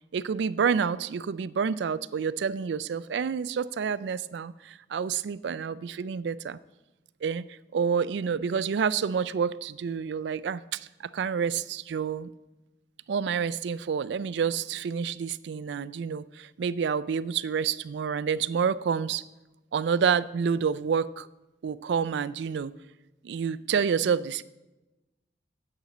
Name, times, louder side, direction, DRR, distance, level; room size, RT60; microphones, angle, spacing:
voice 1, 0.1-6.6 7.2-7.4 7.7-10.9 11.1-12.3 13.1-19.2 19.7-21.3 21.6-22.7 23.2-24.4, right 6 dB, 75° right, 17 dB, 0.3 m, -28 dB
10.5 x 7.9 x 4.1 m, 1.0 s
head